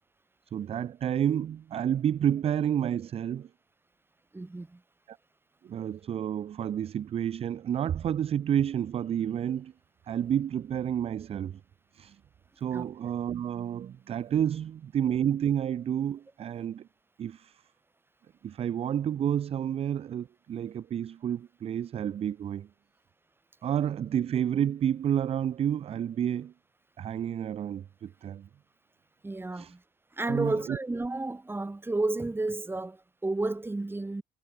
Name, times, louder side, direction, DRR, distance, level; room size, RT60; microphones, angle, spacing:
voice 1, 0.5-3.5 5.1-5.2 5.6-9.7 10.1-11.6 11.9-12.2 12.6-16.9 17.2-17.6 18.4-22.7 23.6-26.5 27.0-28.5 29.5-29.7 30.3-30.8, right 9 dB, 35° right, 0.4 m, -30 dB
voice 2, 4.3-4.8 12.7-12.9 29.2-29.8 30.1-34.2, right 2 dB, 15° right, 2.9 m, -32 dB
cardioid pair, 110°, 17 cm